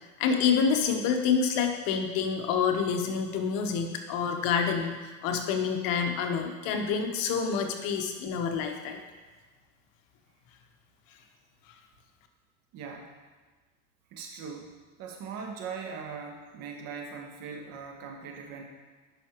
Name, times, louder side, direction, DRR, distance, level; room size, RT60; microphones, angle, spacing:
voice 1, 0.2-9.0, left 6 dB, 60° left, 4 dB, 1.1 m, -27 dB
voice 2, 12.7-13.1 14.1-18.6, right 5 dB, 55° right, 2 dB, 1.5 m, -40 dB
11.0 x 5.8 x 3.0 m, 1.4 s
supercardioid pair, 120°, 40 cm